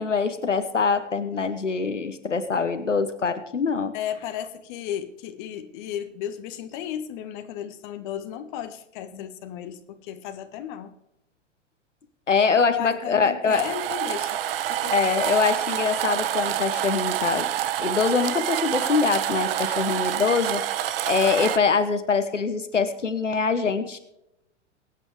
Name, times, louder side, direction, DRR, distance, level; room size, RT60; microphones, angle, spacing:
voice 1, 0.0-3.9 12.3-13.6 14.9-17.5 17.8-20.6 21.0-24.0, left 5 dB, 80° left, 10 dB, 1.2 m, -24 dB
voice 2, 3.9-10.9 12.6-14.4 14.7-15.1, left 10 dB, 40° left, 9 dB, 1.5 m, -34 dB
sound 1, 13.5-21.6, right 11 dB, 50° right, 1.1 m, -27 dB
23.0 x 9.1 x 3.3 m, 0.85 s
figure-of-eight pair, 95°, 36 cm